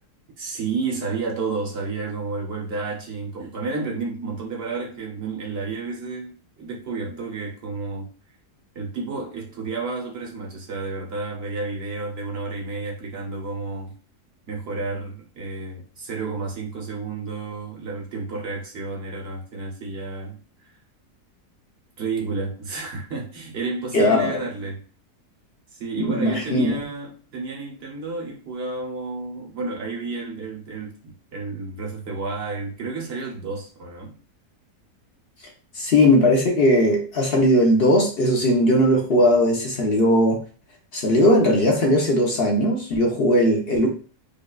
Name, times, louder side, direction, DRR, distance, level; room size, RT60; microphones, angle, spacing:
voice 1, 0.4-8.1 8.7-13.9 14.5-20.4 22.0-24.9 25.7-34.2, right 3 dB, 45° right, -2 dB, 0.9 m, -31 dB
voice 2, 23.9-24.4 26.0-26.7 35.7-40.4 40.9-43.9, left 1 dB, 50° left, 0 dB, 0.8 m, -18 dB
5.1 x 2.4 x 2.3 m, 0.38 s
omnidirectional pair, 1.7 m